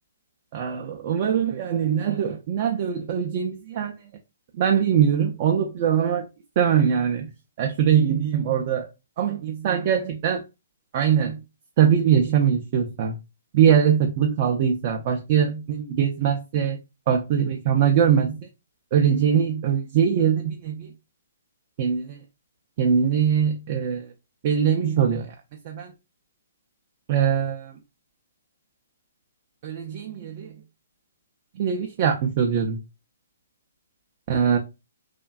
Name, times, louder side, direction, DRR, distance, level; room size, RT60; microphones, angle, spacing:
voice 1, 0.5-4.0 4.6-6.3 6.6-7.3 7.6-8.9 9.2-10.4 10.9-11.4 11.8-13.2 13.5-16.8 17.1-18.5 18.9-20.9 21.8-22.2 22.8-24.1 24.4-25.3 25.6-25.9 27.1-27.8 29.6-30.5 31.6-32.8 34.3-34.6, right 8 dB, 40° right, 0.3 m, -22 dB
2.5 x 2.2 x 2.3 m
figure-of-eight pair, 125°, 0 cm